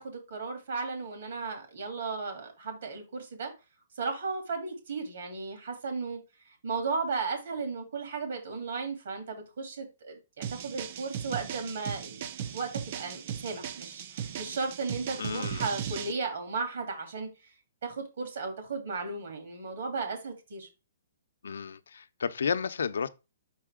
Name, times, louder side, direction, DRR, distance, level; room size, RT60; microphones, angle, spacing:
voice 1, 0.0-3.5 4.0-6.2 6.6-12.2 12.5-17.3 17.8-20.7, right 4 dB, 60° right, 3.0 m, -35 dB
sound 1, 10.4-16.1, right 8 dB, 30° right, 0.4 m, -37 dB
voice 2, 15.2-15.7 21.4-23.1, left 6 dB, 85° left, 0.6 m, -32 dB
5.7 x 5.4 x 3.7 m
hypercardioid pair, 175°, 0 cm